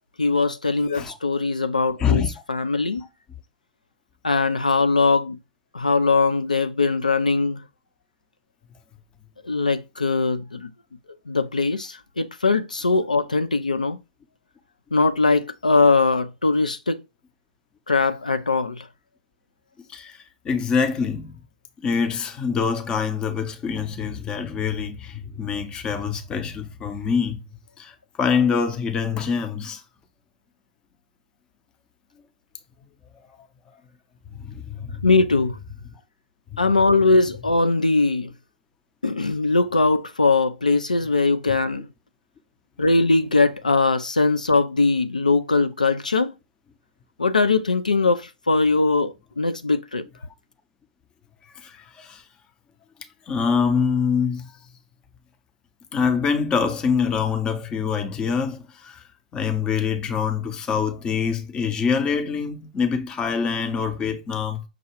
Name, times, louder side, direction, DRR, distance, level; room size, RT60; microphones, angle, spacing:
voice 1, 0.2-3.0 4.2-5.4 5.7-7.6 9.4-10.7 11.3-14.0 14.9-17.0 17.9-18.9 35.0-35.6 36.6-38.3 39.0-41.9 42.8-46.3 47.2-50.1, left 3 dB, 80° left, 0.3 m, -21 dB
voice 2, 20.4-21.3 21.8-27.4 27.8-27.9 28.2-29.8 34.3-35.1 36.5-36.6 41.5-41.6 51.6-52.2 53.3-54.5 55.9-59.0 59.3-64.6, left 6 dB, 20° left, 0.6 m, -25 dB
5.9 x 2.3 x 3.0 m
figure-of-eight pair, 100°, 4 cm